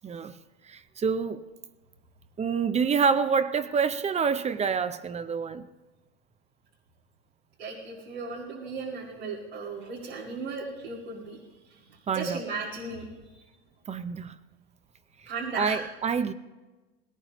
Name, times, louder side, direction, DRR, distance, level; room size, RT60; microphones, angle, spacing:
voice 1, 0.0-0.3 0.6-1.4 2.4-5.7 12.1-12.4 13.9-14.3 15.5-16.3, right 6 dB, 20° right, 0.6 m, -27 dB
voice 2, 7.6-11.4 11.7-13.1 13.3-13.4 15.3-15.8, right 4 dB, 85° right, 2.3 m, -36 dB
19.0 x 17.5 x 3.0 m
hypercardioid pair, 90°, 31 cm